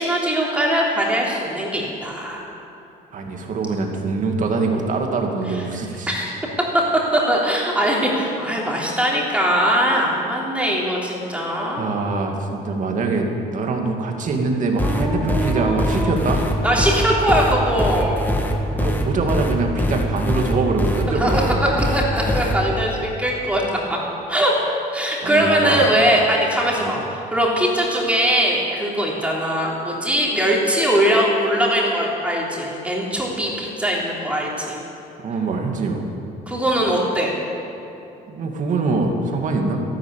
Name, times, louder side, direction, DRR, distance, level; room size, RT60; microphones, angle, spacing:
voice 1, 0.0-2.4 6.1-6.3 7.1-11.9 14.8-16.2 16.6-18.2 21.1-21.4 21.8-24.0 24.3-24.5 24.9-34.8 36.5-37.3, equal, 5° right, -4 dB, 3.4 m, -21 dB
voice 2, 3.1-6.1 11.8-16.5 18.6-21.7 25.2-25.9 26.8-27.0 35.2-36.1 38.3-39.8, right 3 dB, 50° right, 2 dB, 2.2 m, -23 dB
sound 1, 14.8-22.5, equal, 10° left, 1.6 m, -22 dB
12.5 x 12.0 x 8.4 m, 2.8 s
cardioid pair, 110°, 17 cm